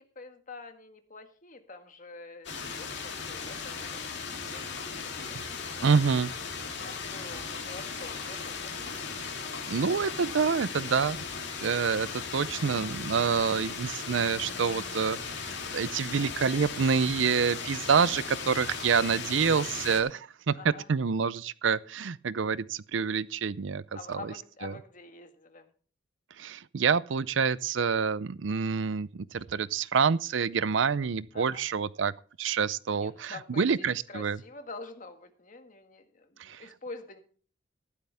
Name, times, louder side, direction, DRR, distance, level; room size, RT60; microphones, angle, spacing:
voice 1, 0.2-6.0 6.6-9.4 18.7-19.0 20.6-20.9 23.9-25.7 31.3-31.7 32.9-37.2, left 3 dB, 40° left, 1.8 m, -47 dB
sound 1, 2.4-20.0, left 5 dB, 60° left, 3.0 m, -37 dB
voice 2, 5.8-6.3 9.7-11.2 11.6-20.5 20.9-23.8 24.1-24.2 24.6-24.7 26.4-32.1 32.4-34.4 36.4-36.6, right 6 dB, 70° right, 0.5 m, -27 dB
14.5 x 12.0 x 3.4 m
head